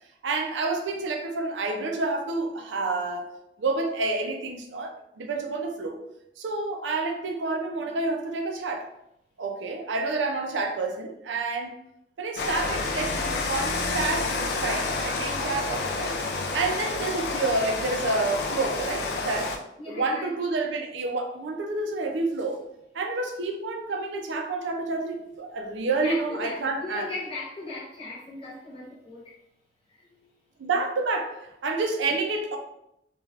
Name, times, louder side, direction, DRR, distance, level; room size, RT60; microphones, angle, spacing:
voice 1, 0.2-3.3 3.6-6.0 6.4-8.9 9.4-11.8 12.2-16.1 16.5-19.5 19.9-22.6 22.9-27.1 30.6-32.6, right 3 dB, 75° right, 3 dB, 0.4 m, -29 dB
Rain, 12.4-19.6, left 3 dB, 60° left, 0.3 m, -29 dB
voice 2, 19.8-20.3 26.0-29.4 29.9-30.3, left 3 dB, 30° left, -6 dB, 0.9 m, -38 dB
3.2 x 2.3 x 2.4 m, 0.80 s
head